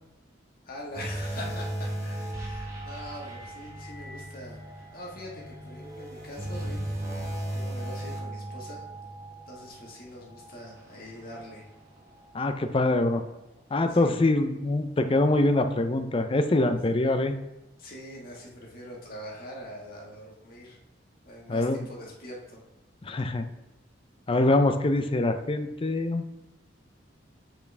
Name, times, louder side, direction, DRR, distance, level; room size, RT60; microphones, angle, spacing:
voice 1, 0.6-8.8 9.5-11.6 13.9-14.3 17.8-20.8 21.2-22.6, left 1 dB, 50° left, -2 dB, 1.6 m, -43 dB
sound 1, 0.9-12.4 12.8-13.0 13.6-13.7, right 1 dB, 15° right, 1.2 m, -37 dB
voice 2, 12.3-13.2 13.7-17.3 21.5-21.8 23.0-23.5 24.3-26.2, left 2 dB, 30° left, 8 dB, 0.5 m, -24 dB
8.2 x 4.4 x 3.3 m, 0.96 s
head